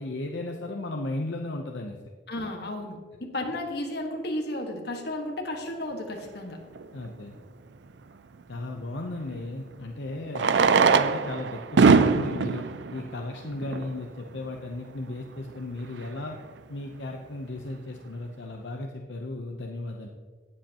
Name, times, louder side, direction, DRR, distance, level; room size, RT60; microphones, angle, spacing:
voice 1, 0.0-2.0 6.9-7.4 8.5-12.6 12.9-16.4 16.7-20.1, left 2 dB, 80° left, 2 dB, 0.8 m, -35 dB
voice 2, 2.3-6.6, left 1 dB, 60° left, 2 dB, 1.6 m, -33 dB
Fireworks, 6.8-6.9 9.1-9.2 10.3-14.0 14.8-14.9 15.1-15.2 15.4-15.5 16.0-16.2, right 5 dB, 70° right, 0.4 m, -22 dB
18.0 x 7.7 x 2.9 m, 1.5 s
head